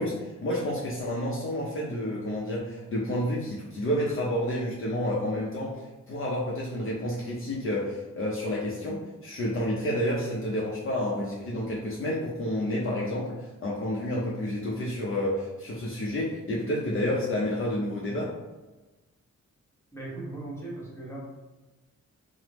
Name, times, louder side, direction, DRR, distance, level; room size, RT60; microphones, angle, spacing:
voice 1, 0.0-18.4, left 1 dB, 45° left, -5 dB, 0.5 m, -30 dB
voice 2, 19.9-21.2, right 2 dB, 10° left, -7 dB, 1.0 m, -38 dB
3.2 x 2.0 x 3.0 m, 1.1 s
wide cardioid pair, 120°, 30 cm